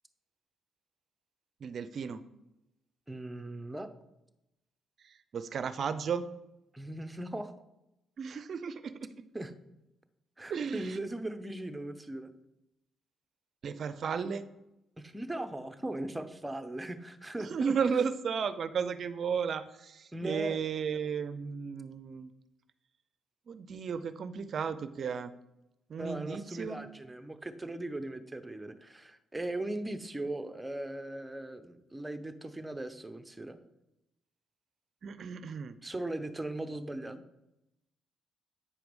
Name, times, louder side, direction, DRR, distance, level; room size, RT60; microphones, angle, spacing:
voice 1, 1.6-2.2 5.3-6.2 8.2-9.1 10.5-11.0 13.6-14.4 17.4-22.3 23.5-25.3 25.9-26.8 35.0-35.8, right 6 dB, 55° right, 13 dB, 0.5 m, -34 dB
voice 2, 3.1-3.9 6.7-7.5 9.3-9.5 10.4-12.3 15.0-17.7 20.1-20.6 26.0-33.6 35.8-37.2, right 1 dB, 10° right, 9 dB, 0.7 m, -38 dB
8.6 x 4.6 x 5.3 m, 0.89 s
cardioid pair, 90°, 0 cm